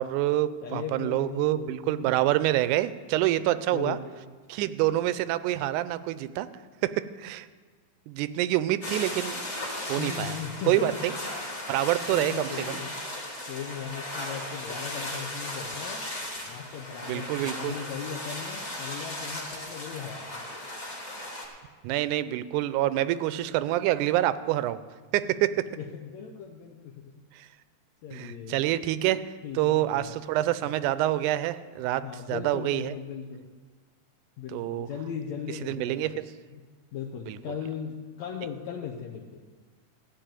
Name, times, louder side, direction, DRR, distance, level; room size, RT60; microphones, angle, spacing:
voice 1, 0.0-4.0 4.5-6.5 6.8-7.5 8.1-9.4 9.9-10.4 10.7-11.1 11.7-12.8 17.1-17.8 21.8-24.8 25.1-25.7 28.1-29.2 29.6-32.9 34.5-34.9 35.7-36.3 37.3-37.4, right 14 dB, 85° right, 15 dB, 2.0 m, -27 dB
voice 2, 0.6-2.1 3.4-4.2 5.0-5.1 6.8-6.9 10.0-11.0 12.1-12.9 13.5-16.1 16.4-20.5 25.8-27.1 28.0-28.6 29.4-30.1 32.0-33.5 34.4-36.2 36.5-36.6 36.9-39.4, left 7 dB, 70° left, 0 dB, 1.9 m, -38 dB
sound 1, 8.8-21.4, left 1 dB, 25° left, 1.7 m, -36 dB
15.0 x 5.3 x 8.9 m, 1.5 s
omnidirectional pair, 3.5 m